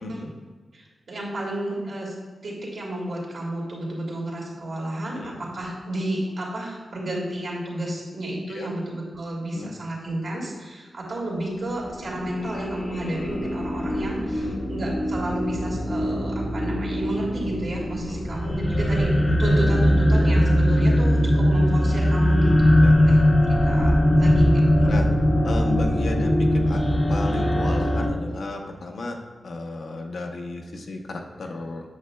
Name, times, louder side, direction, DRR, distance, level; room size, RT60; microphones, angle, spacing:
voice 1, 0.7-2.2 2.4-19.1 19.4-23.9 24.2-25.1, right 1 dB, 70° right, -4 dB, 2.0 m, -31 dB
sound 1, 11.9-28.1, equal, 25° left, 0.7 m, -21 dB
voice 2, 17.8-18.2 19.3-19.4 22.8-23.0 24.9-25.1 25.4-29.2 29.4-31.8, left 2 dB, 70° left, 2 dB, 0.8 m, -34 dB
8.1 x 6.6 x 2.2 m, 1.5 s
wide cardioid pair, 120°, 0 cm